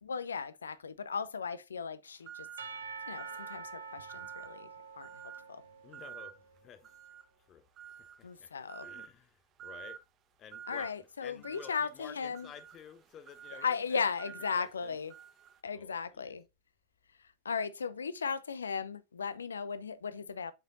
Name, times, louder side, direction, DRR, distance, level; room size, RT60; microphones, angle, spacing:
voice 1, 0.0-2.5 3.1-5.2 5.5-5.6 8.2-8.9 10.7-12.5 13.6-15.1 15.6-16.4 17.4-20.5, left 5 dB, 70° left, 0.5 m, -36 dB
sound 1, 2.2-2.8 3.2-3.6 4.1-4.6 5.0-5.5 5.9-6.4 6.8-7.3 7.8-8.2 8.7-9.1 9.6-10.0 10.5-10.9 11.4-15.6, right 9 dB, 30° right, 0.7 m, -49 dB
Percussion / Church bell, 2.6-6.5, right 4 dB, 75° right, 0.8 m, -46 dB
voice 2, 5.8-7.0 7.4-7.7 8.0-8.5 8.8-10.0 10.4-10.9 11.2-15.0 15.7-16.4, left 8 dB, 30° left, 0.7 m, -53 dB
7.6 x 4.9 x 2.6 m
figure-of-eight pair, 90°, 0 cm